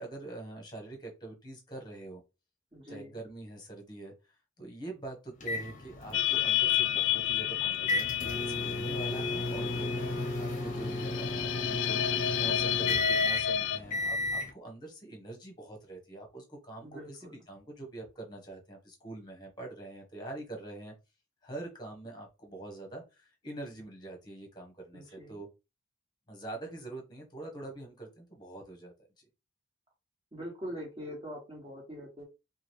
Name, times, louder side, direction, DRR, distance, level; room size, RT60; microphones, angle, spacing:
voice 1, 0.0-2.2 2.9-20.9 21.4-25.5 26.3-29.2, right 2 dB, 20° left, 2 dB, 1.1 m, -44 dB
voice 2, 2.7-3.2 16.8-17.4 24.9-25.4 30.3-32.2, equal, 25° right, -1 dB, 1.8 m, -43 dB
sound 1, 5.4-14.5, left 2 dB, 40° left, 0.8 m, -34 dB
sound 2, 6.1-13.8, left 11 dB, 60° left, 0.4 m, -30 dB
4.9 x 2.4 x 3.1 m, 0.26 s
head